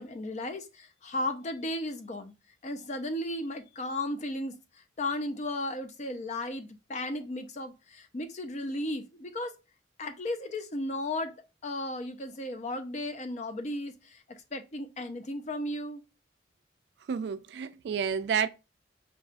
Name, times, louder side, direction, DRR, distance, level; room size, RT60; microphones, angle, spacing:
voice 1, 0.0-2.3 2.6-4.6 5.0-9.5 10.0-11.3 11.6-16.0, left 1 dB, 40° left, 0.5 m, -35 dB
voice 2, 17.1-18.5, right 7 dB, 65° right, 0.3 m, -30 dB
6.5 x 2.3 x 2.4 m
head